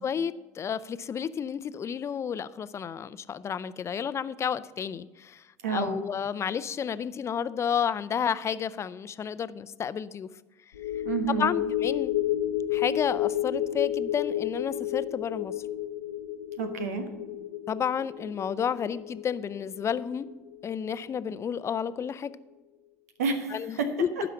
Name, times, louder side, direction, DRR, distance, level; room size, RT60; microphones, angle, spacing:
voice 1, 0.0-10.3 10.9-11.0 11.4-12.1 12.7-15.5 17.7-20.3 20.6-22.3 23.5-24.1, left 7 dB, 35° left, 15 dB, 0.5 m, -31 dB
voice 2, 5.6-6.0 11.0-11.5 16.6-17.1 23.2-23.9, right 5 dB, 90° right, 7 dB, 1.3 m, -29 dB
sound 1, 10.7-21.3 21.7-21.8, left 12 dB, 90° left, 0.8 m, -32 dB
12.0 x 5.0 x 7.0 m, 1.2 s
hypercardioid pair, 75°, 8 cm